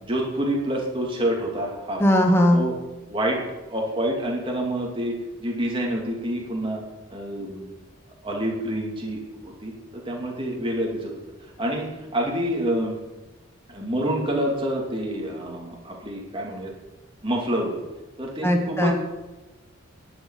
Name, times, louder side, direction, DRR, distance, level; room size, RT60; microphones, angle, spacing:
voice 1, 0.0-2.0 2.5-2.7 3.1-3.4 3.7-6.8 7.1-7.8 8.2-11.1 11.6-11.9 12.1-13.0 13.7-16.7 17.2-17.7 18.2-18.9, right 1 dB, 25° right, -1 dB, 2.8 m, -27 dB
voice 2, 2.0-2.7 18.4-18.9, equal, 10° left, 2 dB, 1.3 m, -18 dB
11.5 x 7.5 x 9.5 m, 1.1 s
head